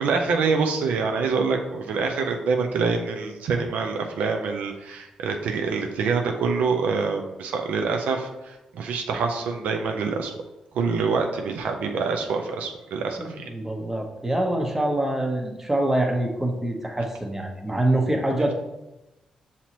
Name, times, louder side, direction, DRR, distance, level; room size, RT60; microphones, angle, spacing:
voice 1, 0.0-10.3 10.7-13.5, right 4 dB, 80° right, 3 dB, 0.4 m, -26 dB
voice 2, 13.2-18.5, right 1 dB, 15° right, 1 dB, 0.9 m, -25 dB
5.8 x 2.8 x 2.9 m, 0.99 s
supercardioid pair, 50°, 2 cm